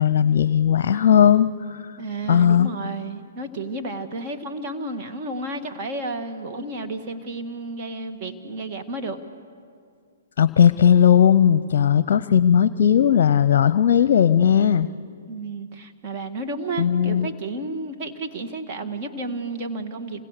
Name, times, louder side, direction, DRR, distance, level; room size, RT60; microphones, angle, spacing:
voice 1, 0.0-1.8 2.3-2.7 10.4-14.9 16.8-17.3, left 8 dB, 55° left, 15 dB, 0.7 m, -17 dB
voice 2, 2.0-9.2 15.3-20.2, right 2 dB, 35° right, 4 dB, 1.9 m, -32 dB
28.5 x 26.0 x 6.8 m, 2.2 s
hypercardioid pair, 125°, 0 cm